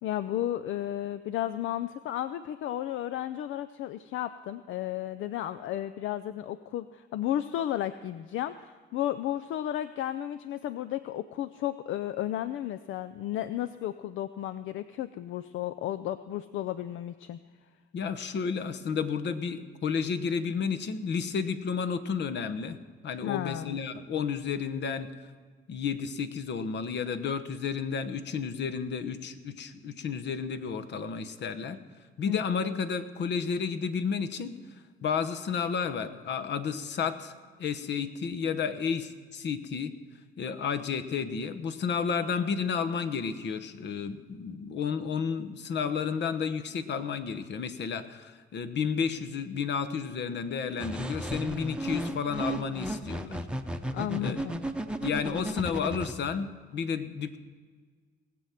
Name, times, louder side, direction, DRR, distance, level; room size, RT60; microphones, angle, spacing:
voice 1, 0.0-17.4 23.2-23.8 32.3-32.4 53.9-54.6, left 12 dB, 80° left, 13 dB, 0.5 m, -33 dB
voice 2, 17.9-22.8 23.0-25.1 25.7-31.8 32.2-34.5 35.0-37.3 37.6-39.9 40.4-53.4 54.2-54.5 55.0-57.4, left 6 dB, 60° left, 11 dB, 1.0 m, -31 dB
sound 1, 50.8-56.1, right 1 dB, 5° right, 0.8 m, -34 dB
19.5 x 7.8 x 5.8 m, 1.5 s
cardioid pair, 90°, 20 cm